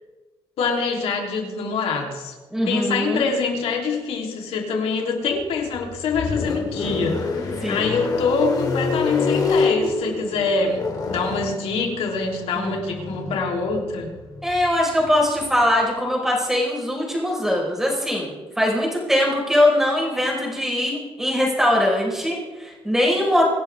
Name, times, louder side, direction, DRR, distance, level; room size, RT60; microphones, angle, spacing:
voice 1, 0.6-2.3 2.7-10.8 11.1-14.1, left 4 dB, 90° left, 0 dB, 3.4 m, -24 dB
voice 2, 2.5-3.3 7.6-7.9 12.6-12.7 14.4-23.5, left 1 dB, 5° right, -2 dB, 4.8 m, -21 dB
sound 1, 5.4-15.6, left 4 dB, 40° left, 2.7 m, -28 dB
27.0 x 12.0 x 3.6 m, 1.2 s
cardioid pair, 165°, 10 cm